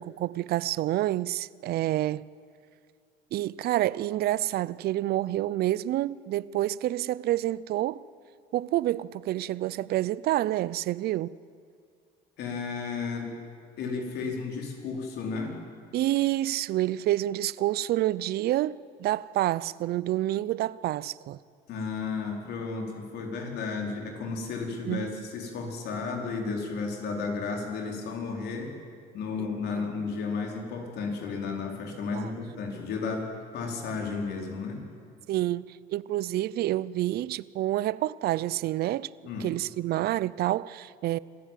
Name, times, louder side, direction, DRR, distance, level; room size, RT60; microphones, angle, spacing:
voice 1, 0.0-2.3 3.3-8.0 8.5-11.4 15.9-21.4 24.9-25.2 29.4-29.5 29.8-29.9 32.1-32.3 35.3-39.1 39.4-41.2, right 14 dB, 70° right, 0.6 m, -28 dB
voice 2, 12.4-13.4 13.8-15.6 21.7-28.7 29.1-34.8 39.2-39.5, left 4 dB, 75° left, 4.6 m, -33 dB
27.0 x 15.0 x 9.3 m
cardioid pair, 110°, 17 cm